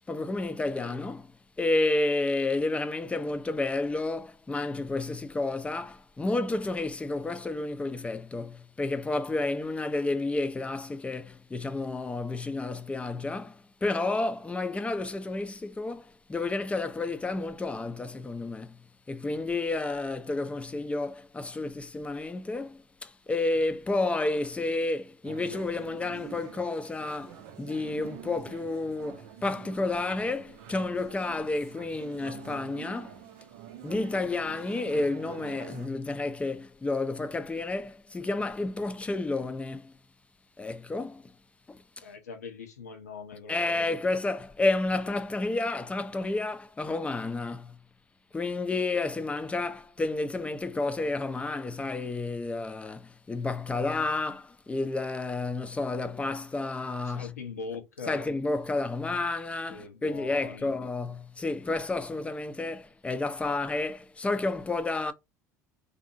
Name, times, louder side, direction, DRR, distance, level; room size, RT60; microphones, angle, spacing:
voice 1, 0.1-1.3 1.6-18.8 19.1-33.2 33.8-39.9 40.6-41.3 41.7-42.0 43.5-47.8 48.3-57.3 58.1-65.1, left 2 dB, 15° left, 0.5 m, -31 dB
sound 1, 25.2-35.9, right 11 dB, 65° right, 0.6 m, -47 dB
voice 2, 42.0-43.8 57.0-58.3 59.7-60.7, left 5 dB, 85° left, 0.8 m, -41 dB
3.4 x 2.7 x 2.6 m
hypercardioid pair, 70°, 8 cm